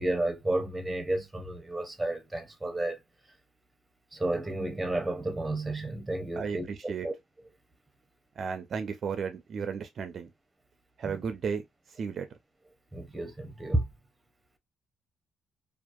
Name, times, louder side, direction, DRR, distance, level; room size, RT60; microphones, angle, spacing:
voice 1, 0.0-3.0 4.1-7.1 11.0-11.2 12.9-13.9, right 1 dB, 15° right, 0.7 m, -31 dB
voice 2, 6.4-7.1 8.4-10.3 11.0-11.6 12.0-12.3, right 6 dB, 55° right, 0.4 m, -34 dB
2.6 x 2.4 x 2.3 m
cardioid pair, 90°, 0 cm